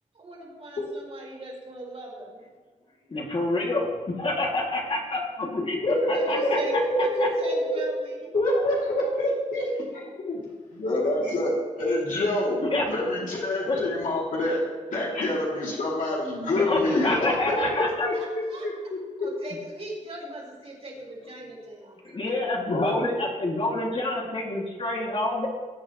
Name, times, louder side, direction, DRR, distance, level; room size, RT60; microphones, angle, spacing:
voice 1, 0.1-2.3 6.1-8.3 18.1-18.7 19.2-22.3, right 1 dB, 50° right, -2 dB, 3.6 m, -39 dB
voice 2, 3.1-7.3 12.6-12.9 13.7-13.8 16.5-18.1 22.0-25.5, left 2 dB, 45° left, -2 dB, 2.4 m, -27 dB
voice 3, 5.8-7.8 8.3-9.7 9.9-10.4 10.7-12.6 12.9-14.6 14.9-18.1 18.6-19.0 22.6-23.1, left 1 dB, 80° left, -6 dB, 2.9 m, -26 dB
18.5 x 9.1 x 3.1 m, 1.4 s
wide cardioid pair, 120°, 13 cm